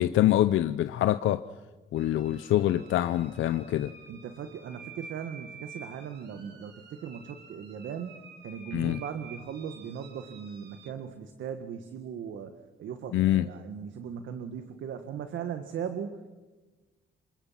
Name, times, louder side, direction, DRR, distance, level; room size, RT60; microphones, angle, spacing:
voice 1, 0.0-1.4 1.9-3.9 8.7-9.0 13.1-13.5, left 13 dB, 80° left, 11 dB, 0.7 m, -25 dB
sound 1, 2.0-10.9, right 4 dB, 60° right, 4.2 m, -50 dB
voice 2, 4.1-16.3, right 7 dB, 75° right, 8 dB, 1.8 m, -38 dB
29.0 x 25.5 x 5.9 m, 1.2 s
cardioid pair, 90°, 20 cm